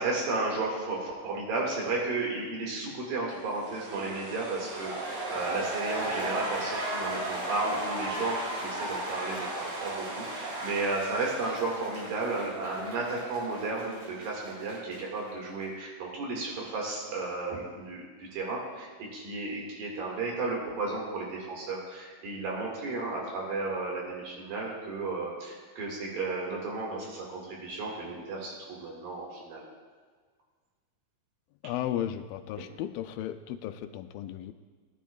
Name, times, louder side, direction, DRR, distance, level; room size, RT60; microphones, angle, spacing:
voice 1, 0.0-29.6, right 3 dB, 75° right, -2 dB, 3.6 m, -33 dB
sound 1, 3.3-12.5, right 2 dB, 60° right, 3.1 m, -40 dB
sound 2, 4.5-15.3 15.6-15.7, right 1 dB, 40° right, 3.1 m, -37 dB
voice 2, 31.6-34.5, left 11 dB, 85° left, 9 dB, 2.3 m, -35 dB
18.5 x 10.0 x 2.3 m, 1.6 s
omnidirectional pair, 4.1 m